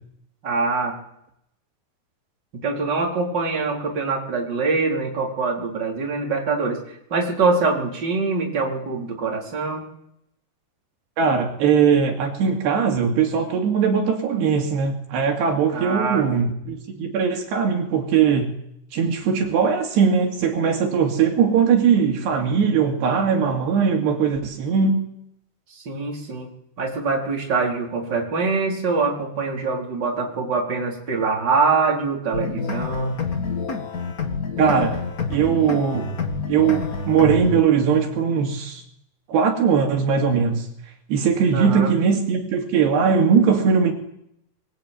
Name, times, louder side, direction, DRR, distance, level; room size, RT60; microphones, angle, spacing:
voice 1, 0.4-1.0 2.6-9.9 15.7-16.3 25.7-26.5 26.8-33.1 41.5-41.9, right 4 dB, 25° right, -1 dB, 4.6 m, -24 dB
voice 2, 11.2-18.5 18.9-25.0 34.6-35.0 35.3-36.1 36.5-38.8 39.3-40.7 41.1-43.9, right 6 dB, 75° right, 2 dB, 4.5 m, -20 dB
sound 1, 32.3-37.6, left 5 dB, 45° left, 1.1 m, -27 dB
25.0 x 21.5 x 9.0 m, 0.77 s
omnidirectional pair, 5.0 m